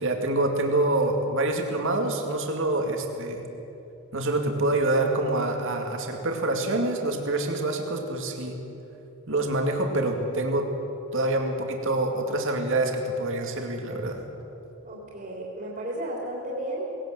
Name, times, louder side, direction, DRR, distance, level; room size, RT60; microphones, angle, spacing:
voice 1, 0.0-3.5 4.1-8.6 9.3-10.7 11.1-14.2, right 2 dB, 60° right, 3 dB, 2.4 m, -26 dB
voice 2, 14.8-17.0, right 1 dB, 40° right, -3 dB, 3.4 m, -33 dB
19.5 x 18.0 x 7.8 m, 3.0 s
head